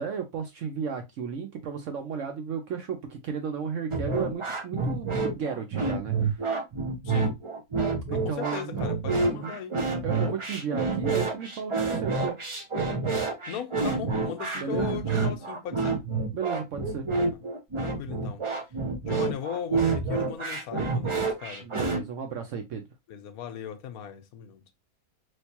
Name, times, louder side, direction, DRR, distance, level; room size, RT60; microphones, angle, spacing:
voice 1, 0.0-6.4 8.1-8.8 9.3-9.6 10.0-12.4 14.6-15.0 16.3-17.1 21.6-22.8, right 7 dB, 65° right, 0.9 m, -34 dB
sound 1, 3.9-22.0, right 3 dB, 45° right, 0.4 m, -28 dB
voice 2, 8.1-9.8 13.5-16.0 17.8-18.4 19.1-21.7 23.1-24.6, left 9 dB, 75° left, 1.1 m, -38 dB
3.2 x 3.1 x 2.8 m
omnidirectional pair, 1.6 m